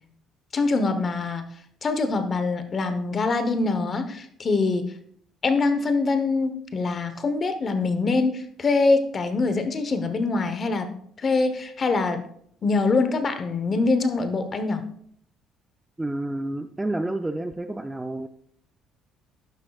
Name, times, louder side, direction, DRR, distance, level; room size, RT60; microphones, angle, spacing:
voice 1, 0.5-1.4 1.8-4.9 5.4-10.9 11.2-12.2 12.6-14.8, left 3 dB, 30° left, 9 dB, 0.9 m, -24 dB
voice 2, 16.0-18.3, right 1 dB, 10° right, 8 dB, 0.4 m, -29 dB
11.5 x 10.5 x 2.3 m, 0.65 s
cardioid pair, 160°, 0 cm